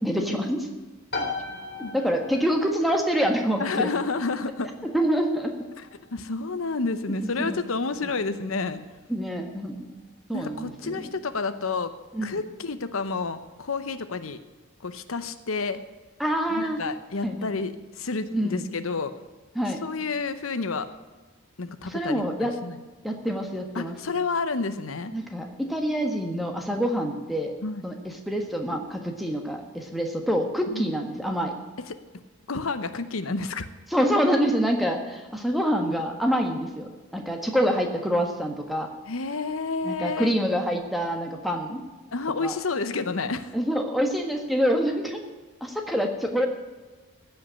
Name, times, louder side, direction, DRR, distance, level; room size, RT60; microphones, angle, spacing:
voice 1, 0.0-0.7 1.9-3.9 4.8-5.5 7.4-7.6 8.0-8.1 9.1-9.7 10.3-11.1 12.1-12.4 16.2-16.8 17.2-17.5 18.3-18.6 19.5-19.8 21.8-22.5 23.0-24.0 25.1-27.5 27.8-31.5 33.9-38.9 39.8-41.8 42.4-42.6 43.5-45.2 45.6-46.5, equal, ahead, 2 dB, 1.6 m, -26 dB
sound 1, 1.1-15.6, left 3 dB, 50° left, 2.8 m, -42 dB
voice 2, 3.6-4.7 5.8-8.8 10.3-11.9 12.2-14.4 14.8-15.8 16.5-19.1 19.8-20.9 21.6-22.8 23.7-25.1 27.6-27.8 30.7-30.9 32.5-33.7 39.1-40.3 42.1-43.6, left 4 dB, 85° left, 11 dB, 0.9 m, -30 dB
15.5 x 5.7 x 9.8 m, 1.3 s
head